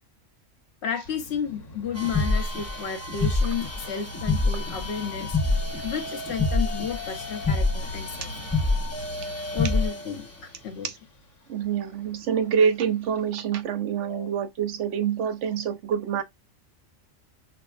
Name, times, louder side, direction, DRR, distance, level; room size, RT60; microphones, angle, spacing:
voice 1, 0.8-5.4 5.8-8.6 9.5-10.9 14.0-14.3, left 7 dB, 65° left, 0.9 m, -32 dB
sound 1, 1.0-13.3, left 2 dB, 80° left, 1.4 m, -44 dB
sound 2, 1.9-10.2, left 2 dB, 15° left, 0.8 m, -27 dB
voice 2, 11.5-16.2, right 7 dB, 75° right, 0.9 m, -26 dB
5.8 x 2.0 x 2.3 m
omnidirectional pair, 1.3 m